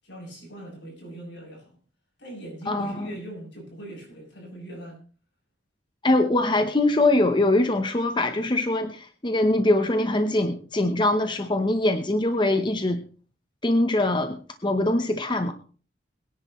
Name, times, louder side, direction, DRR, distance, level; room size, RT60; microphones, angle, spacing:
voice 1, 0.0-1.8 2.2-5.0, right 1 dB, 75° left, 7.8 m, -41 dB
voice 2, 2.7-3.1 6.0-13.0 13.6-14.4 14.6-15.5, left 2 dB, 25° left, 0.8 m, -23 dB
22.0 x 10.0 x 3.1 m
head